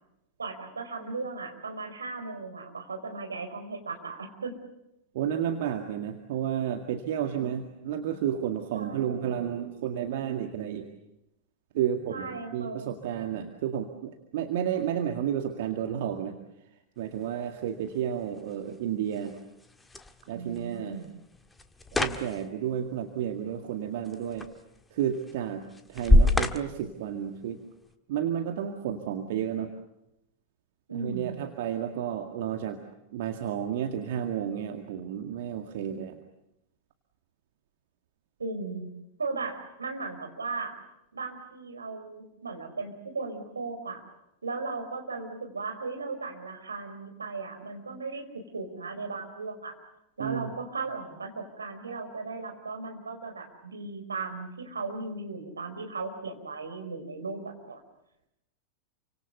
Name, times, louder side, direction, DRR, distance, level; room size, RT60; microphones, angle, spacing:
voice 1, 0.4-4.5 8.7-9.4 12.1-12.9 20.3-21.1 30.9-31.4 38.4-38.9 39.2-40.7 41.1-44.0 44.4-48.2 48.5-49.7 50.2-57.8, right 3 dB, 75° right, 5 dB, 4.8 m, -36 dB
voice 2, 5.1-10.9 11.7-16.4 17.0-19.4 20.3-21.0 21.9-24.5 24.9-27.6 28.1-29.7 30.9-32.8 33.1-36.2 50.2-50.5, right 9 dB, 55° right, 5 dB, 2.0 m, -31 dB
sound 1, 17.0-27.9, left 1 dB, 10° left, 1.6 m, -30 dB
29.0 x 25.5 x 6.9 m, 0.86 s
figure-of-eight pair, 90°, 0 cm